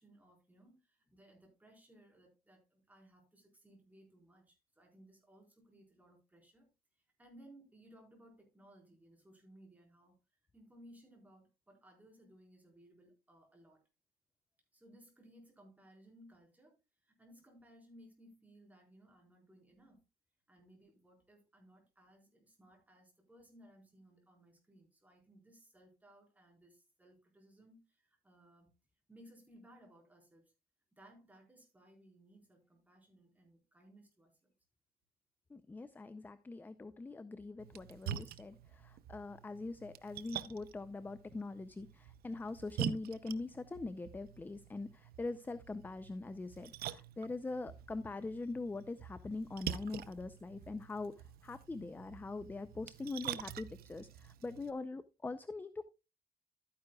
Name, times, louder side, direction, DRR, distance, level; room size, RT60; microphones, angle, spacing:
voice 1, 0.0-6.7 7.2-10.1 10.5-13.8 14.7-16.7 17.0-20.0 20.5-28.7 29.1-30.5 30.9-34.3, right 1 dB, 10° right, 4.3 m, -62 dB
voice 2, 35.5-51.1 51.4-55.8, left 3 dB, 10° left, 0.4 m, -43 dB
Splash splatter, 37.6-54.7, right 10 dB, 75° right, 0.7 m, -46 dB
12.5 x 9.6 x 2.3 m
cardioid pair, 150°, 16 cm